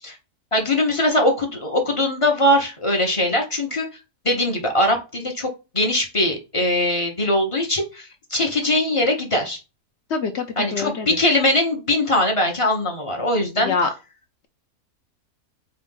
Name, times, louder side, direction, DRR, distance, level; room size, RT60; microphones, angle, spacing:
voice 1, 0.5-3.9 4.2-5.5 5.7-9.6 10.6-13.7, left 1 dB, 25° left, 2 dB, 0.7 m, -21 dB
voice 2, 10.1-11.1 13.6-13.9, left 5 dB, 65° left, 7 dB, 0.7 m, -25 dB
4.4 x 2.4 x 3.7 m, 0.29 s
omnidirectional pair, 1.7 m